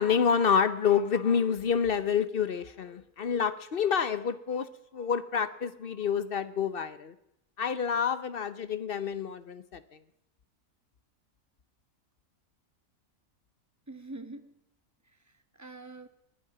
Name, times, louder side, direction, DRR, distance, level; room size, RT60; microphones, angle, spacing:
voice 1, 0.0-7.1 7.6-10.0, left 7 dB, 50° left, 13 dB, 0.9 m, -28 dB
voice 2, 13.9-14.5 15.0-16.1, right 2 dB, 15° right, 9 dB, 1.1 m, -45 dB
19.5 x 11.0 x 6.0 m, 0.82 s
omnidirectional pair, 1.4 m